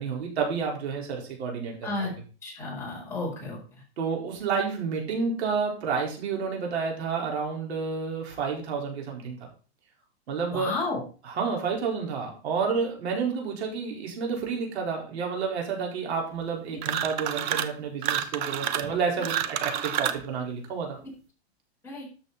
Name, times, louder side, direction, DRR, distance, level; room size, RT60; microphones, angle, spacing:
voice 1, 0.0-2.1 4.0-9.4 10.3-10.7 11.4-21.0, right 5 dB, 80° right, 0 dB, 4.7 m, -30 dB
voice 2, 1.8-2.1 2.4-3.6 10.5-11.0 16.7-16.8 21.8-22.1, left 3 dB, 10° left, -5 dB, 4.8 m, -32 dB
sound 1, 16.8-17.7 18.0-20.3, right 10 dB, 45° right, 1.0 m, -29 dB
13.0 x 7.4 x 4.2 m, 0.37 s
supercardioid pair, 165°, 32 cm